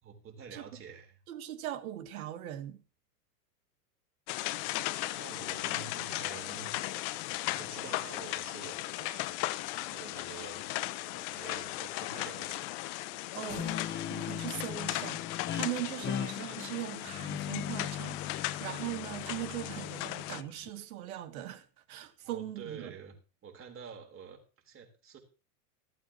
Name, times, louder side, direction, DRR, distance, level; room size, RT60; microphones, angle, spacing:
voice 1, 0.0-1.2 4.4-4.5 5.2-6.7 7.3-9.4 9.7-10.7 11.1-12.8 22.2-23.1 23.4-24.4 24.6-25.2, right 6 dB, 25° right, 4.1 m, -48 dB
voice 2, 1.3-2.8 13.3-22.9, right 13 dB, 60° right, 2.4 m, -40 dB
sound 1, 4.3-20.4, left 18 dB, 45° left, 1.0 m, -37 dB
Thunder, 13.1-20.4, left 8 dB, 80° left, 2.2 m, -55 dB
Guitar, 13.5-20.7, left 9 dB, 25° left, 1.1 m, -39 dB
15.0 x 14.5 x 3.0 m
hypercardioid pair, 100°, 48 cm